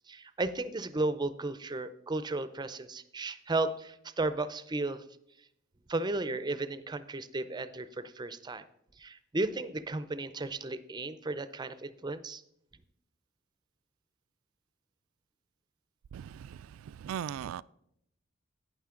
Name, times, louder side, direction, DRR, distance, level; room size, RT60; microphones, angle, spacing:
voice 1, 0.1-5.0 5.9-8.6 9.0-12.4, right 2 dB, 20° right, 0.5 m, -34 dB
voice 2, 16.1-16.6 16.9-17.6, right 9 dB, 75° right, 0.3 m, -38 dB
11.5 x 9.5 x 3.7 m
head